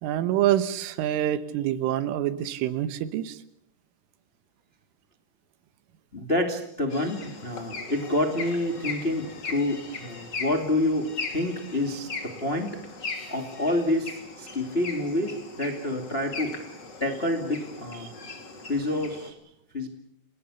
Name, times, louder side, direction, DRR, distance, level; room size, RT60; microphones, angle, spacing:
voice 1, 0.0-3.4, right 12 dB, 80° right, 13 dB, 3.6 m, -26 dB
voice 2, 6.1-12.8 13.3-16.7 17.0-18.1 18.7-19.4 19.7-19.9, left 1 dB, 45° left, 4 dB, 0.7 m, -28 dB
sound 1, 6.9-19.3, left 4 dB, 30° left, 2.4 m, -39 dB
29.5 x 19.5 x 7.0 m, 0.74 s
omnidirectional pair, 5.9 m